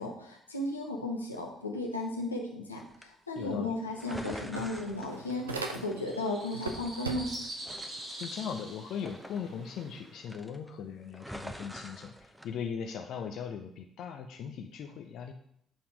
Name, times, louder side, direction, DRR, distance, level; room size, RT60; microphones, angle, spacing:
voice 1, 0.0-7.3, left 2 dB, 90° left, 0 dB, 0.8 m, -35 dB
sound 1, 2.8-3.0 4.0-6.3 6.6-7.3 7.7-10.0 10.3-10.7 11.1-12.4, equal, 5° right, 0.9 m, -46 dB
voice 2, 3.4-3.8 8.2-15.3, left 7 dB, 60° left, 5 dB, 0.5 m, -39 dB
sound 2, 3.5-3.6 3.9-6.2 6.5-7.6, right 3 dB, 85° right, 0.5 m, -39 dB
sound 3, 5.0-10.2, right 1 dB, 50° right, 2.3 m, -45 dB
7.7 x 4.2 x 5.2 m, 0.70 s
figure-of-eight pair, 45°, 0 cm